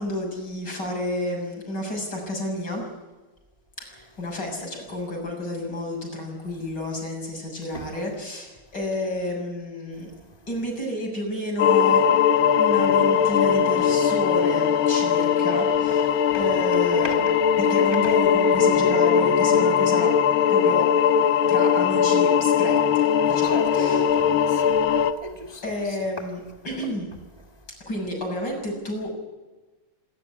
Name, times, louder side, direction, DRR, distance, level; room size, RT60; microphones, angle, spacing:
voice 1, 0.0-2.8 3.8-10.1 10.5-12.0 12.6-17.3 17.6-20.1 20.5-20.9 21.5-24.1 25.6-27.1 27.9-29.1, left 1 dB, 55° left, 7.4 m, -30 dB
sound 1, 11.6-25.1, left 7 dB, 75° left, 1.9 m, -20 dB
voice 2, 17.0-17.3 17.7-18.2 23.3-24.8 25.2-26.0, right 1 dB, 20° right, 1.6 m, -35 dB
27.0 x 13.5 x 9.7 m
omnidirectional pair, 2.3 m